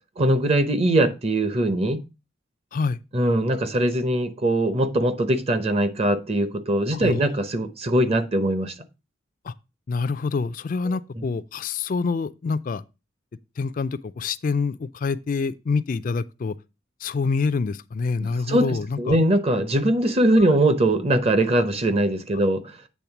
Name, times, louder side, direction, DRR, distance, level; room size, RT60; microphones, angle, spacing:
voice 1, 0.2-2.0 3.1-8.7 18.5-18.7 19.0-22.7, right 1 dB, 35° right, 0.8 m, -21 dB
voice 2, 9.9-12.8 13.6-16.6 17.0-19.2 20.4-20.5, left 4 dB, 50° left, 0.4 m, -26 dB
8.5 x 3.5 x 5.8 m
head